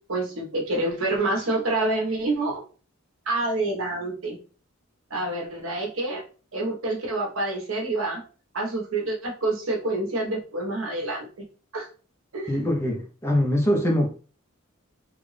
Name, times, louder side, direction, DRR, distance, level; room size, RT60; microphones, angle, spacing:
voice 1, 0.1-2.6 3.2-4.4 5.1-6.2 6.5-8.2 8.5-11.3 11.7-11.9 12.3-12.7, right 2 dB, 80° right, 1.2 m, -27 dB
voice 2, 12.5-14.1, equal, 10° left, 0.8 m, -23 dB
3.6 x 2.5 x 3.3 m
head